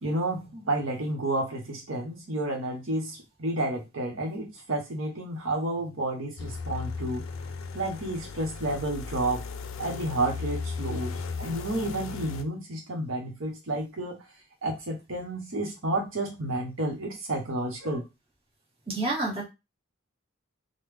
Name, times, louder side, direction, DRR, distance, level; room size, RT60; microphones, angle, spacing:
voice 1, 0.0-7.3 7.7-9.4 9.8-14.2 14.6-18.0, right 1 dB, 70° right, 1 dB, 1.0 m, -31 dB
sound 1, 6.4-12.4, left 5 dB, 75° left, 0.4 m, -36 dB
voice 2, 18.9-19.4, right 2 dB, 25° right, -4 dB, 1.4 m, -28 dB
3.5 x 2.2 x 3.3 m, 0.24 s
head